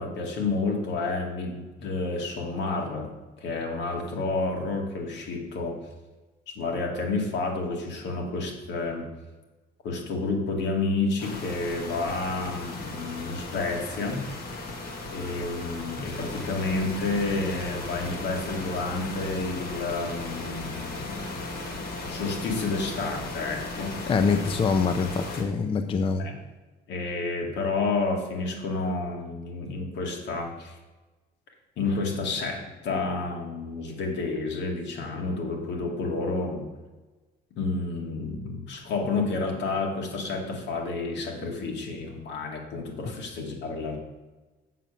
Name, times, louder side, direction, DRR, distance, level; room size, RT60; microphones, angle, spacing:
voice 1, 0.0-3.1 3.4-5.8 6.5-9.1 9.8-14.3 15.1-21.3 22.0-23.9 26.2-26.4 26.9-30.8 31.8-36.6 37.6-44.0, left 3 dB, 75° left, 1 dB, 2.3 m, -30 dB
sound 1, 11.2-25.4, left 2 dB, 55° left, 1.9 m, -36 dB
voice 2, 24.1-26.3, left 5 dB, 30° left, 8 dB, 0.5 m, -24 dB
7.5 x 7.2 x 6.9 m, 1.2 s
cardioid pair, 140°, 18 cm